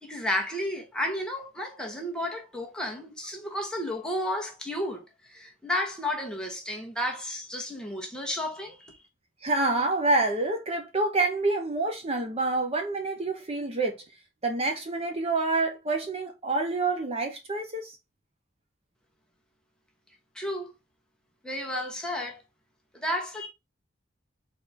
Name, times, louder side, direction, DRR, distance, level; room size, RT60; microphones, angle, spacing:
voice 1, 0.0-9.0 20.3-20.7 21.4-22.4 22.9-23.5, left 1 dB, 5° left, 1.0 m, -32 dB
voice 2, 9.4-14.0 14.4-17.9, right 2 dB, 30° right, 0.8 m, -27 dB
4.1 x 3.5 x 3.4 m
head